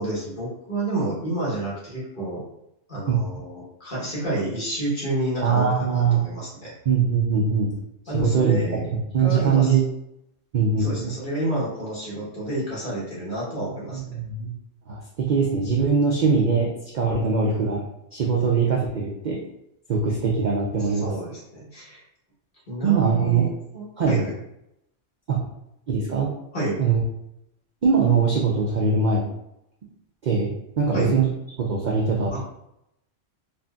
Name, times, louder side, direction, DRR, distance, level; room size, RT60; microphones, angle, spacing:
voice 1, 0.0-2.4 2.9-6.7 8.1-8.8 9.2-9.8 10.8-14.0 20.8-22.0 22.7-24.3 26.5-26.8 30.9-31.2 32.3-32.4, right 1 dB, 40° left, -7 dB, 1.3 m, -29 dB
voice 2, 5.4-6.2 6.9-7.7 8.1-8.6 9.1-9.8 10.5-11.1 13.9-14.5 14.9-17.8 18.1-19.4 19.9-21.1 22.8-23.5 24.0-24.2 25.3-25.4 25.9-26.3 26.8-27.0 27.8-29.2 30.2-30.5 30.8-31.3 31.7-32.4, right 5 dB, 75° right, -2 dB, 0.4 m, -21 dB
3.8 x 2.5 x 2.3 m, 0.81 s
omnidirectional pair, 1.3 m